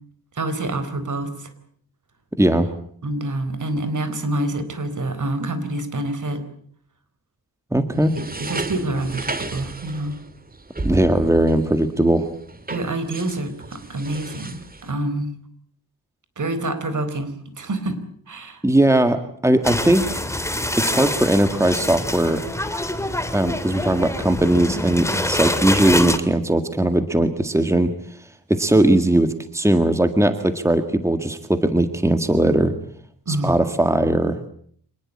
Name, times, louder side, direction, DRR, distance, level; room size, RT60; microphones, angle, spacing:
voice 1, 0.3-1.5 3.0-6.4 8.1-10.2 12.7-15.3 16.4-18.0 18.3-18.6 33.3-33.6, right 1 dB, 55° right, 12 dB, 4.4 m, -27 dB
voice 2, 2.4-2.7 7.7-8.1 10.8-12.3 18.6-20.2 20.8-22.4 23.3-27.9 28.5-32.7 33.3-34.4, right 1 dB, 10° right, 9 dB, 1.8 m, -19 dB
sound 1, 7.9-14.9, right 3 dB, 25° right, 2.0 m, -34 dB
sound 2, 19.6-26.2, left 1 dB, 10° left, 2.6 m, -25 dB
26.5 x 19.5 x 8.6 m, 0.62 s
wide cardioid pair, 105°, 36 cm